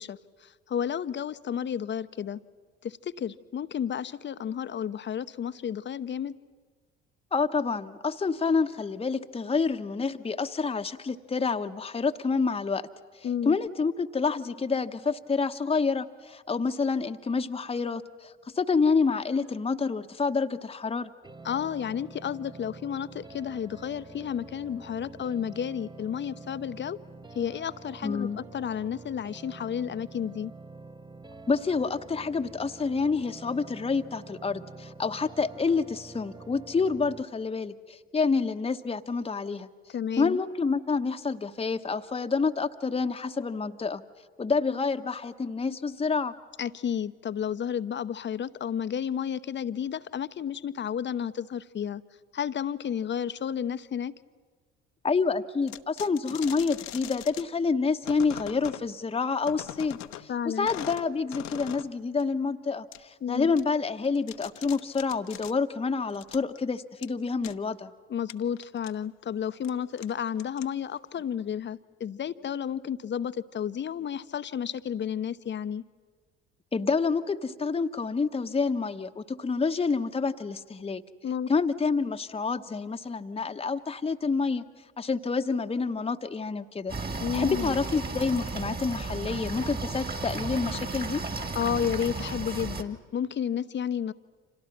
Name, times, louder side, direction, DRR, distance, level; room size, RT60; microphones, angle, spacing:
voice 1, 0.0-2.4 2.8-6.4 13.2-13.6 21.4-27.0 27.3-30.5 39.9-40.4 46.6-52.0 52.3-54.1 60.3-60.7 63.2-63.5 68.1-75.8 81.2-81.5 87.2-87.7 91.5-94.1, left 8 dB, 35° left, 14 dB, 0.8 m, -32 dB
voice 2, 7.3-12.9 13.1-21.1 28.0-28.4 31.5-39.7 40.2-44.0 44.4-46.3 55.0-67.9 76.7-81.0 81.5-84.6 85.0-86.9 87.3-91.2, left 4 dB, 20° left, 7 dB, 1.0 m, -28 dB
sound 1, 21.2-37.2, right 3 dB, 15° right, 1.0 m, -47 dB
sound 2, 55.7-57.4 58.0-58.9 59.4-60.3 60.7-61.9 62.2-62.3 62.9-63.0 63.6-63.7 64.0-65.5 66.1-66.6 67.0-67.1 67.4-67.6 68.3-68.9 69.5-69.7 70.0-71.0, left 14 dB, 60° left, 1.0 m, -41 dB
sound 3, 86.9-92.8, right 3 dB, 30° right, 2.1 m, -34 dB
30.0 x 26.5 x 6.0 m, 1.5 s
hypercardioid pair, 55°, 32 cm